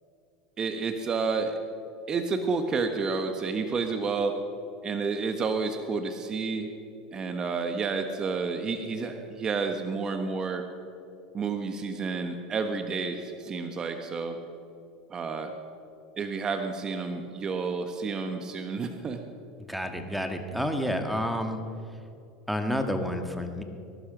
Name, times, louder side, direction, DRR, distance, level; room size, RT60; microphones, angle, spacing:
voice 1, 0.6-1.5 2.1-4.3 4.8-6.7 7.1-10.6 11.3-14.4 15.1-15.5 16.2-19.2, right 4 dB, 30° right, 7 dB, 1.3 m, -30 dB
voice 2, 19.7-21.6 22.5-23.6, equal, ahead, 6 dB, 1.7 m, -29 dB
20.5 x 11.5 x 5.2 m, 2.7 s
hypercardioid pair, 90°, 2 cm